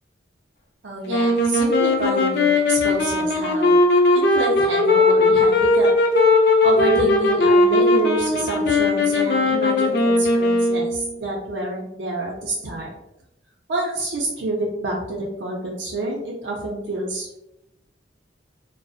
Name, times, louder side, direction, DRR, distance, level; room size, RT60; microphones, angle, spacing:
voice 1, 0.8-3.8 4.1-5.9 6.6-12.9 13.7-17.4, right 1 dB, 80° right, -3 dB, 0.5 m, -27 dB
sound 1, 1.1-11.1, left 2 dB, 60° left, 0.4 m, -18 dB
2.3 x 2.0 x 2.6 m, 0.87 s
head